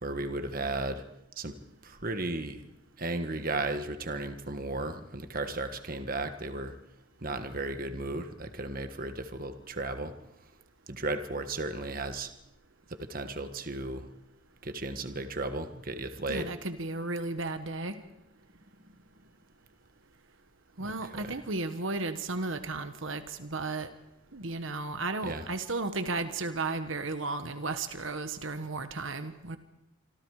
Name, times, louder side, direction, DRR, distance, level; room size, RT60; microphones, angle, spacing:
voice 1, 0.0-1.0 1.4-1.6 1.8-2.6 3.0-6.8 7.2-10.1 10.9-12.3 12.9-14.1 14.6-16.5 25.3-25.4, right 2 dB, 45° right, 8 dB, 1.5 m, -34 dB
voice 2, 16.3-18.0 20.8-23.9 24.3-29.6, right 3 dB, 65° right, 9 dB, 1.4 m, -34 dB
27.0 x 25.5 x 5.0 m, 0.87 s
head